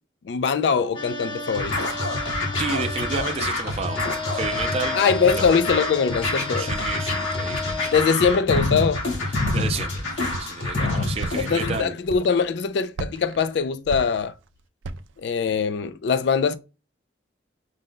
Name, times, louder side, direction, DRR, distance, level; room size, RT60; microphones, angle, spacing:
voice 1, 0.2-1.8 5.0-6.7 7.9-9.0 10.8-11.1 11.4-14.3 15.2-16.6, left 6 dB, 60° left, 0.3 m, -22 dB
sound 1, 0.9-3.4 3.8-7.9, left 3 dB, 25° left, 0.7 m, -33 dB
Scratching (performance technique), 1.5-11.8, left 2 dB, 85° left, 1.7 m, -27 dB
voice 2, 2.6-4.0 4.3-5.0 6.6-8.1 9.3-11.9, right 4 dB, 30° right, 0.4 m, -31 dB
Walk footsteps, 6.7-7.1 7.7-8.2 8.5-9.0 9.4-9.9 10.3-10.6 11.1-11.6 12.1-12.6 12.9-14.5 14.8-15.2, right 3 dB, 85° right, 0.4 m, -35 dB
5.0 x 2.2 x 3.8 m
head